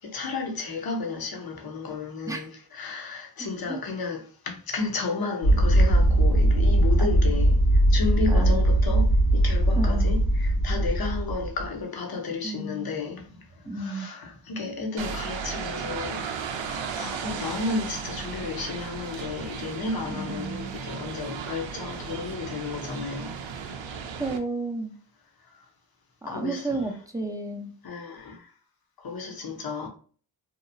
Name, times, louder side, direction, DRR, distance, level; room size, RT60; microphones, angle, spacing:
voice 1, 0.0-13.5 13.7-23.4 25.5-25.6 26.3-26.9 27.8-28.5 29.0-29.9, left 4 dB, 50° left, 0.8 m, -33 dB
sound 1, 5.4-11.6, right 1 dB, 75° left, 1.4 m, -20 dB
voice 2, 7.0-7.4 8.3-8.6 9.8-10.1 12.4-12.9 13.7-14.1 20.1-20.7 24.2-24.9 26.2-27.7, right 2 dB, 5° right, 0.5 m, -32 dB
sound 2, 15.0-24.4, right 6 dB, 70° right, 0.5 m, -35 dB
2.8 x 2.0 x 2.6 m
cardioid pair, 50°, 48 cm